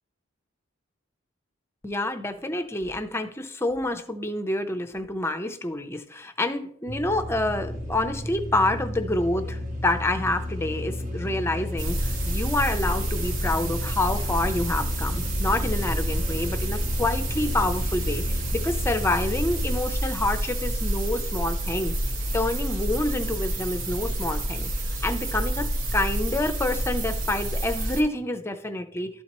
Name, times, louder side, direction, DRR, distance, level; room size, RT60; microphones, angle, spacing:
voice 1, 1.8-21.9 22.3-24.7 25.0-25.7 25.9-29.1, left 2 dB, 15° left, 8 dB, 0.5 m, -28 dB
sound 1, 6.9-19.8, left 1 dB, 40° right, 0.8 m, -33 dB
sound 2, 11.8-28.0, right 1 dB, 80° right, 1.0 m, -28 dB
12.5 x 4.2 x 2.9 m, 0.65 s
head